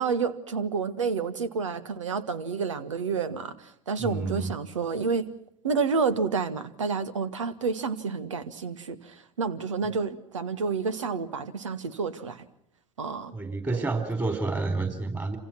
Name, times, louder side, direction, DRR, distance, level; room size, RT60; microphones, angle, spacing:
voice 1, 0.0-5.2 5.6-12.4 13.0-13.3 13.7-13.8, right 5 dB, 75° right, 14 dB, 1.6 m, -29 dB
voice 2, 4.0-4.5 13.3-15.4, right 3 dB, 20° right, 7 dB, 4.1 m, -29 dB
27.5 x 27.5 x 6.0 m, 0.69 s
figure-of-eight pair, 65°, 16 cm